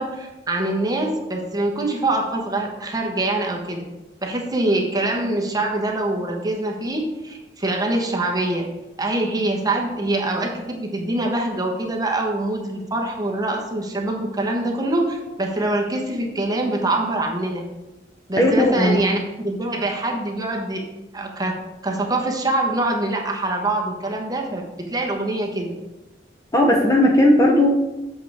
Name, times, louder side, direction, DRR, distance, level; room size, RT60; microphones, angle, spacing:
voice 1, 0.0-3.8 4.2-8.7 9.0-17.6 18.3-19.2 19.4-20.8 21.1-21.5 21.8-25.7, right 2 dB, 20° right, 0 dB, 1.1 m, -24 dB
voice 2, 18.4-19.0 26.5-27.7, left 1 dB, 20° left, 0 dB, 0.7 m, -16 dB
7.7 x 6.3 x 3.5 m, 1.0 s
head